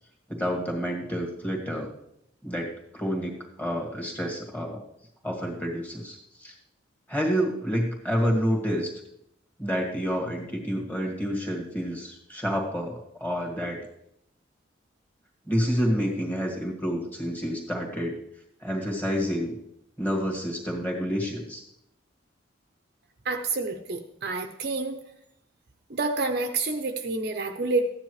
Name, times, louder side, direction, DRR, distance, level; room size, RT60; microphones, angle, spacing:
voice 1, 0.3-1.9 2.4-4.8 5.2-6.5 7.1-8.9 9.6-13.8 15.5-18.2 18.6-19.5 20.0-21.6, equal, 10° left, 0 dB, 2.0 m, -29 dB
voice 2, 23.2-25.0 25.9-27.9, right 3 dB, 50° right, 5 dB, 0.7 m, -28 dB
14.0 x 9.8 x 3.2 m, 0.76 s
head